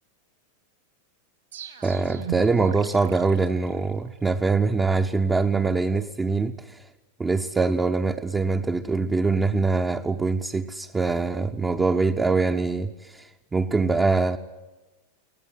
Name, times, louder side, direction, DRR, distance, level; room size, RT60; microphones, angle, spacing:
sound 1, 1.5-4.3, right 9 dB, 65° right, 2.6 m, -38 dB
voice 1, 1.8-6.8 7.2-14.4, right 4 dB, 15° right, 3 dB, 0.8 m, -23 dB
24.5 x 18.5 x 9.8 m, 1.2 s
figure-of-eight pair, 90°, 0 cm